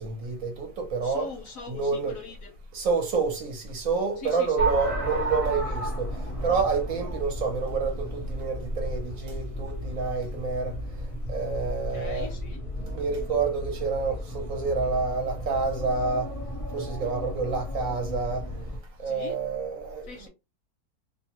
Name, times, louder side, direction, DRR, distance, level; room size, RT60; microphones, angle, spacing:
voice 1, 0.0-1.3 1.7-2.1 2.7-6.1 6.4-10.7 11.3-12.3 12.9-16.3 16.7-18.5 19.0-20.3, right 4 dB, 60° right, 1.1 m, -28 dB
voice 2, 1.0-2.5 4.2-4.7 11.9-12.6 19.1-19.4 20.0-20.3, left 5 dB, 70° left, 0.9 m, -41 dB
sound 1, 4.6-18.8, equal, 35° left, 0.5 m, -33 dB
2.7 x 2.1 x 2.8 m
omnidirectional pair, 1.7 m